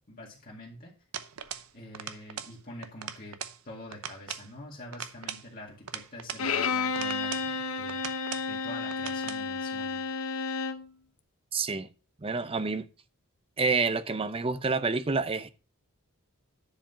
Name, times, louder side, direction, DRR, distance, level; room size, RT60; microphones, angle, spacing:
voice 1, 0.1-0.9 1.7-3.4 3.6-8.1 8.5-10.0, left 1 dB, 40° left, 2.1 m, -45 dB
sound 1, 1.1-1.7 1.9-2.6 2.8-3.6 3.9-4.5 4.9-6.5 6.9-7.5 7.9-8.5 8.9-9.4, right 8 dB, 75° right, 0.8 m, -40 dB
Bowed string instrument, 6.4-10.9, left 4 dB, 75° left, 0.8 m, -31 dB
voice 2, 11.5-11.9 12.2-12.9 13.6-15.5, right 4 dB, 25° right, 0.6 m, -28 dB
10.5 x 4.9 x 5.7 m
head